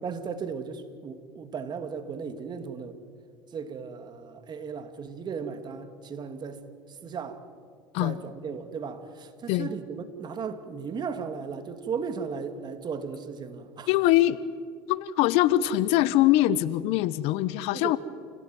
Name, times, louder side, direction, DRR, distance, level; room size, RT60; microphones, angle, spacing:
voice 1, 0.0-3.0 3.5-7.4 8.0-13.9 17.7-18.0, right 6 dB, 40° right, 8 dB, 2.7 m, -36 dB
voice 2, 13.9-14.4 14.9-18.0, left 14 dB, 70° left, 17 dB, 1.0 m, -23 dB
28.5 x 18.0 x 9.4 m, 2.1 s
supercardioid pair, 85°, 11 cm